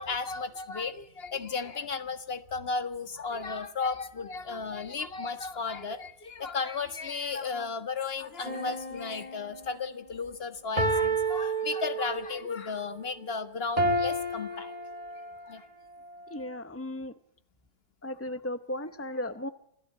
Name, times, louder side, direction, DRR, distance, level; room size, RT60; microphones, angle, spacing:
voice 1, 0.0-14.8 15.4-15.7, left 4 dB, 40° left, 11 dB, 1.6 m, -34 dB
sound 1, 8.4-9.8 10.8-12.4 13.8-15.5 16.1-16.3, right 2 dB, 25° right, 2.6 m, -30 dB
voice 2, 16.3-17.1 18.0-19.5, left 1 dB, 20° left, 12 dB, 0.4 m, -35 dB
27.0 x 16.5 x 8.6 m, 0.74 s
omnidirectional pair, 1.8 m